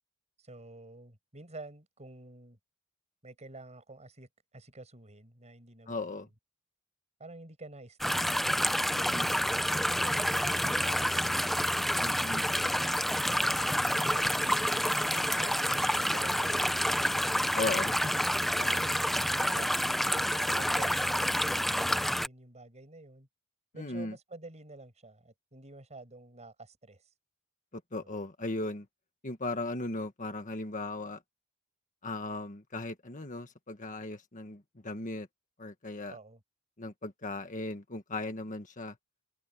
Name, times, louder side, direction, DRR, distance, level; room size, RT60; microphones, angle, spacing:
voice 1, 0.4-2.6 3.2-6.2 7.2-8.6 9.7-11.5 11.8-12.1 14.0-16.9 18.5-19.0 19.5-19.9 20.1-23.3 23.7-27.0 28.0-28.2 36.1-36.4, right 2 dB, 30° right, 6.3 m, -49 dB
voice 2, 5.9-6.3 8.9-9.3 12.0-12.5 17.5-18.1 23.8-24.1 27.7-28.9 29.2-31.2 32.0-35.3 35.6-36.2 36.8-39.0, left 2 dB, 35° left, 1.7 m, -37 dB
sound 1, 8.0-22.3, equal, ahead, 0.7 m, -28 dB
head